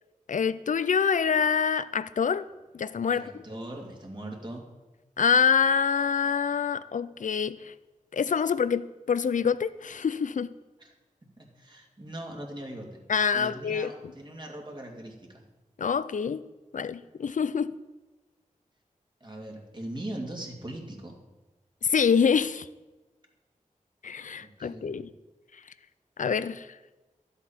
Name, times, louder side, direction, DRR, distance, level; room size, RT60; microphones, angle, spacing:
voice 1, 0.3-2.5 2.7-3.2 5.2-7.7 8.1-10.5 13.1-13.9 15.8-16.4 16.7-17.7 21.8-22.7 24.0-25.1 26.2-26.7, left 6 dB, 70° left, 15 dB, 0.4 m, -26 dB
voice 2, 3.1-4.6 10.8-10.9 11.4-13.0 13.3-15.4 19.2-21.2 24.4-25.0, right 1 dB, 35° right, 0 dB, 2.1 m, -40 dB
12.0 x 8.1 x 4.3 m, 1.1 s
wide cardioid pair, 60°, 14 cm